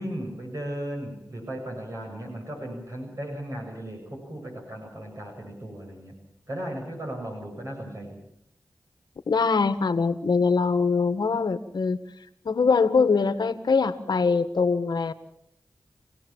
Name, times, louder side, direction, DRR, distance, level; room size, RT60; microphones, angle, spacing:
voice 1, 0.0-6.1 6.5-8.2, right 1 dB, 45° right, 1 dB, 7.3 m, -36 dB
voice 2, 9.3-12.0 12.5-15.1, left 4 dB, 70° left, 10 dB, 1.6 m, -23 dB
27.0 x 17.0 x 7.4 m, 0.76 s
cardioid pair, 50°, 7 cm